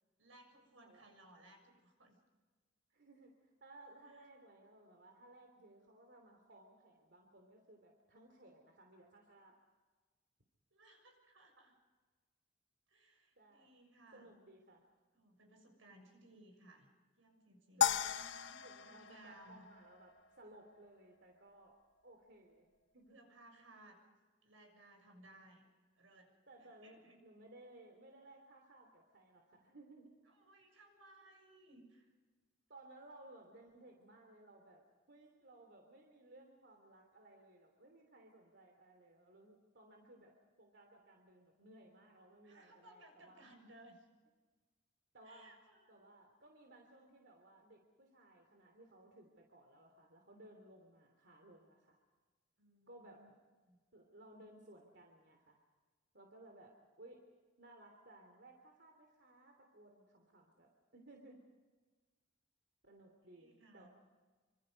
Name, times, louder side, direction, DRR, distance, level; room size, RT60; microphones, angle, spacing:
voice 1, 0.2-2.2 4.1-4.2 10.7-11.8 12.9-14.3 15.1-16.9 17.2-19.7 23.1-24.0 24.4-25.6 26.0-26.3 26.6-27.2 30.3-32.1 42.4-44.1 45.2-45.9 52.6-53.3 53.6-53.8 63.3-63.9, right 1 dB, 90° right, 3 dB, 6.9 m, -62 dB
voice 2, 2.9-9.5 13.4-13.7 14.1-14.8 17.8-18.0 18.6-21.8 22.0-22.7 22.9-23.2 26.5-30.1 32.7-34.8 35.1-40.3 40.6-43.5 45.1-45.5 45.9-52.0 52.9-53.2 53.9-55.6 56.1-57.2 57.6-61.4 62.8-63.9, right 1 dB, 60° right, 2 dB, 3.2 m, -60 dB
sound 1, 17.8-20.2, left 8 dB, 65° left, 1.2 m, -36 dB
27.5 x 25.5 x 5.4 m, 1.3 s
head